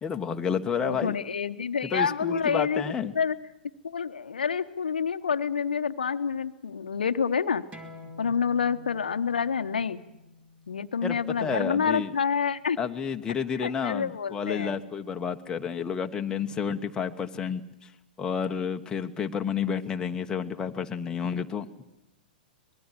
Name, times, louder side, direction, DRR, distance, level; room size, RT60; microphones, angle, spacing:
voice 1, 0.0-1.2 1.8-3.1 11.0-12.1 12.8-17.9 18.2-21.7, left 6 dB, 15° left, 5 dB, 1.2 m, -30 dB
voice 2, 0.8-2.8 3.1-3.3 3.8-7.6 8.2-10.0 10.7-12.8 13.6-14.8, left 6 dB, 75° left, 11 dB, 0.9 m, -28 dB
sound 1, 7.7-12.9, left 2 dB, 25° right, 2.8 m, -49 dB
25.0 x 20.5 x 7.6 m, 0.91 s
figure-of-eight pair, 105°, 5 cm